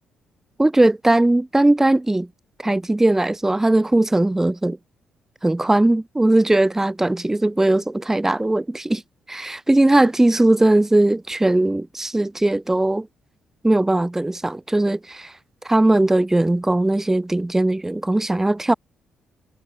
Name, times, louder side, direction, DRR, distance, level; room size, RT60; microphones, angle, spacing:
voice 1, 0.6-2.3 2.6-4.8 5.4-9.0 9.3-13.1 13.6-15.3 15.6-18.7, right 2 dB, 15° right, 0.6 m, -19 dB
hypercardioid pair, 45°, 3 cm